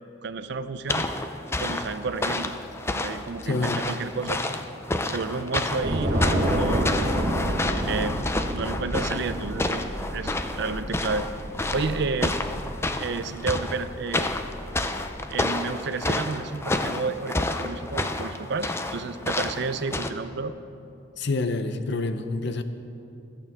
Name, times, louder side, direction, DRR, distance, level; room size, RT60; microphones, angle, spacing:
voice 1, 0.2-1.1 1.6-2.6 2.9-4.4 5.1-7.0 7.9-8.2 8.5-9.8 10.1-11.3 11.7-12.4 13.0-14.3 15.3-20.5, right 4 dB, 65° right, 12 dB, 0.6 m, -31 dB
sound 1, 0.9-20.1, left 2 dB, 15° left, 0.5 m, -30 dB
voice 2, 3.4-3.9 21.2-22.6, left 3 dB, 65° left, 9 dB, 0.7 m, -27 dB
Train / Subway metro underground, 5.8-15.3, right 1 dB, 40° right, 1.6 m, -30 dB
26.5 x 8.8 x 3.6 m, 2.8 s
head